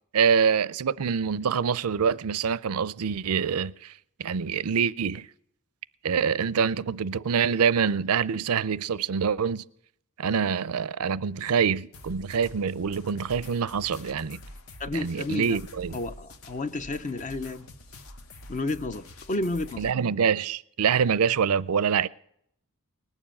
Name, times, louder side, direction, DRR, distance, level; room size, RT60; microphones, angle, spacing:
voice 1, 0.1-3.9 4.2-5.3 6.0-9.6 10.2-14.4 14.9-16.0 19.8-22.1, right 6 dB, 90° right, 0.5 m, -25 dB
sound 1, 11.9-19.9, left 1 dB, 65° left, 1.0 m, -46 dB
voice 2, 14.8-15.6 15.9-17.7 18.5-19.9, left 2 dB, 35° left, 0.5 m, -31 dB
20.0 x 7.2 x 8.8 m
head